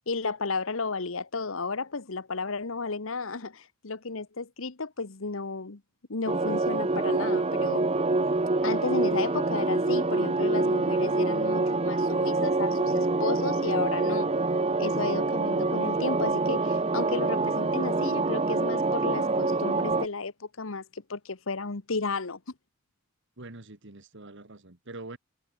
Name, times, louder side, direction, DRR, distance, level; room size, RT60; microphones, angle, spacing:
voice 1, 0.1-5.8 6.1-7.9 8.6-14.3 14.8-22.4, left 4 dB, 65° left, 1.2 m, -33 dB
sound 1, 6.3-20.1, right 3 dB, 30° right, 0.9 m, -26 dB
voice 2, 23.4-25.2, right 2 dB, 60° right, 2.1 m, -44 dB
head